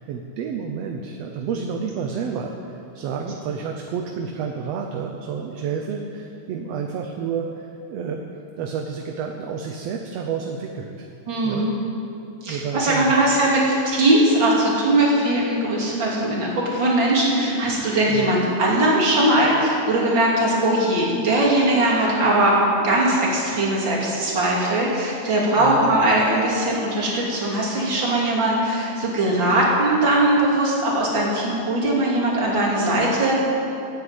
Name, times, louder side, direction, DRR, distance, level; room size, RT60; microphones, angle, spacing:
voice 1, 0.0-11.1 11.4-11.7 12.4-13.1 13.4-13.5 18.1-18.3 25.5-25.8, right 6 dB, 70° right, 2 dB, 1.8 m, -30 dB
voice 2, 11.3-11.7 12.4-33.3, right 1 dB, 40° right, -4 dB, 3.4 m, -20 dB
12.5 x 9.4 x 9.0 m, 2.7 s
omnidirectional pair, 3.4 m